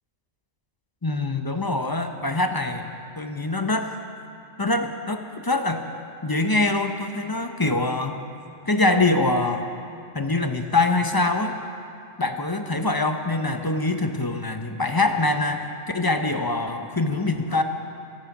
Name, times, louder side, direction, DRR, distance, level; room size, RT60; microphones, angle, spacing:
voice 1, 1.0-2.9 3.2-3.9 4.6-5.8 6.2-8.2 8.7-9.7 10.1-11.6 12.2-15.7 15.9-17.6, left 2 dB, 20° left, 6 dB, 0.7 m, -24 dB
25.5 x 8.9 x 6.0 m, 2.5 s
omnidirectional pair, 1.3 m